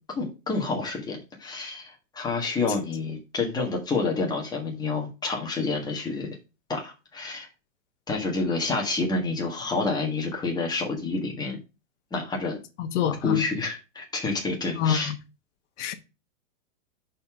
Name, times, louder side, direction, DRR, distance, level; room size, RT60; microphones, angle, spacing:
voice 1, 0.1-6.4 6.7-7.5 8.1-11.6 12.1-12.6 13.2-15.1, left 3 dB, 10° left, 1.4 m, -28 dB
voice 2, 12.8-13.4 14.8-15.1 15.8-15.9, left 8 dB, 60° left, 1.2 m, -26 dB
5.5 x 4.3 x 5.9 m
supercardioid pair, 155°, 41 cm